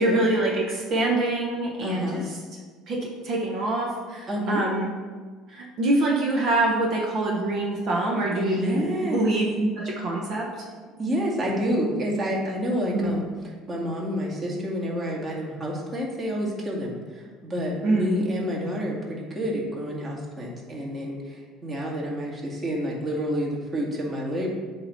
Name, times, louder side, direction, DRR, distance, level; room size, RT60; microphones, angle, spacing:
voice 1, 0.0-2.2 2.9-4.9 5.5-10.7 12.9-13.2 17.8-18.2, right 2 dB, 55° right, -1 dB, 1.0 m, -25 dB
voice 2, 1.8-2.3 4.3-4.6 8.3-9.3 11.0-13.3 13.7-24.5, equal, 35° right, -2 dB, 1.9 m, -29 dB
7.6 x 3.0 x 5.6 m, 1.5 s
hypercardioid pair, 65°, 0 cm